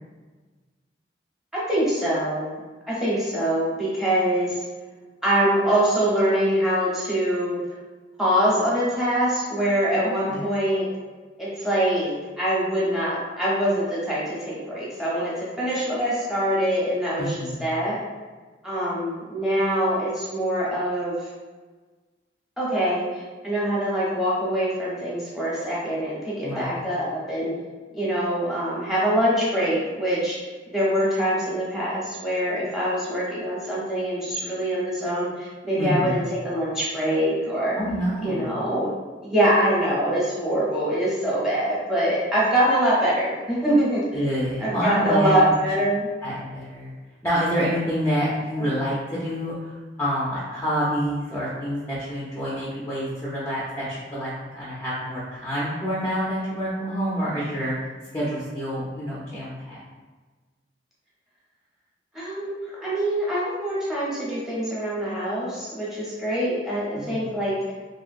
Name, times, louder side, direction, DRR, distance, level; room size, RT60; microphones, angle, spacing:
voice 1, 1.5-2.6 2.9-4.6 5.2-7.6 8.2-10.9 11.4-18.0 18.6-21.2 22.6-27.5 27.9-30.4 30.7-37.8 38.2-38.9 39.2-44.2 44.6-46.1 48.6-48.7 62.1-62.5 62.8-67.6, right 1 dB, ahead, -8 dB, 0.9 m, -24 dB
voice 2, 17.2-17.7 26.4-26.9 35.8-36.2 37.8-38.5 44.1-45.4 46.2-46.9 47.2-49.7 50.0-57.7 58.1-59.8 67.0-67.3, equal, 15° left, -8 dB, 0.5 m, -27 dB
3.0 x 2.7 x 2.5 m, 1.3 s
head